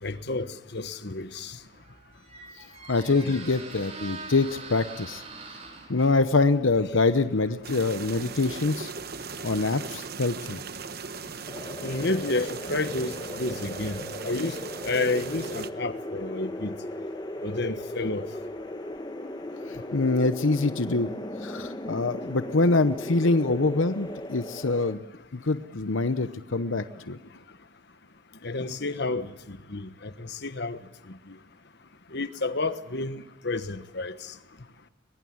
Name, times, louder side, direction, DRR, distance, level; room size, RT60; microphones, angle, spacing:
voice 1, 0.0-1.6 3.2-3.3 11.8-14.6 14.8-16.7 17.4-18.3 28.4-30.8 32.1-34.1, left 2 dB, 55° left, 1.3 m, -30 dB
Squeak, 1.5-10.3, right 3 dB, 30° right, 4.6 m, -45 dB
voice 2, 2.9-5.2 5.9-8.9 9.4-10.6 19.7-21.1 21.4-25.0 25.3-27.2, left 3 dB, 70° left, 0.9 m, -25 dB
sound 1, 7.6-15.7, right 5 dB, 50° right, 1.0 m, -38 dB
sound 2, 11.5-24.9, left 1 dB, 20° left, 1.2 m, -37 dB
22.5 x 22.0 x 8.7 m
head